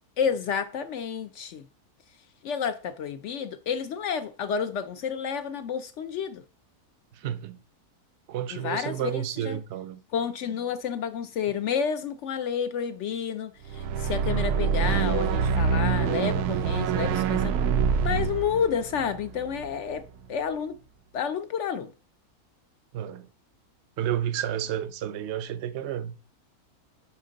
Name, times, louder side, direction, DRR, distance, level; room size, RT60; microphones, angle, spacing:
voice 1, 0.2-1.6 2.4-6.4 8.5-9.6 10.1-17.6 18.0-20.0 20.3-20.7 21.1-21.9, left 7 dB, 65° left, 0.7 m, -30 dB
voice 2, 7.1-7.6 8.3-10.0 22.9-23.3 24.0-26.2, right 10 dB, 60° right, 0.7 m, -31 dB
sound 1, 13.6-20.0, right 6 dB, 85° right, 1.1 m, -26 dB
10.5 x 3.6 x 3.9 m
omnidirectional pair, 1.6 m